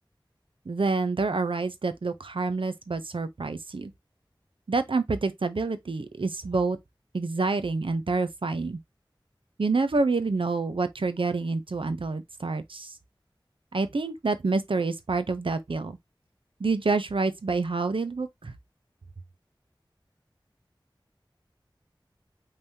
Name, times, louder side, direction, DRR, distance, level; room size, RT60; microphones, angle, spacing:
voice 1, 0.7-3.9 4.7-6.8 7.1-8.8 9.6-12.9 13.7-16.0 16.6-18.5, right 3 dB, 90° right, 0.6 m, -27 dB
5.5 x 3.3 x 2.8 m
wide cardioid pair, 50°, 9 cm